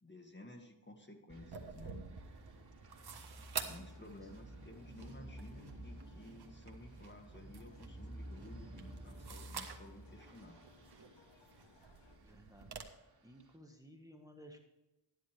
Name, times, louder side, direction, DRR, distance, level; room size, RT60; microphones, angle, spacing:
voice 1, 0.0-2.0 3.7-10.6, left 1 dB, 25° left, 4 dB, 2.0 m, -54 dB
sound 1, 1.3-13.6, right 1 dB, 40° right, 3.1 m, -53 dB
sound 2, 1.3-12.8, right 5 dB, 55° right, 1.7 m, -50 dB
sound 3, 3.7-12.2, left 5 dB, 75° left, 1.3 m, -66 dB
voice 2, 3.9-4.3 12.2-12.8 13.2-14.6, equal, 10° right, 3 dB, 1.6 m, -57 dB
13.0 x 10.5 x 3.4 m, 1.0 s
cardioid pair, 70°, 45 cm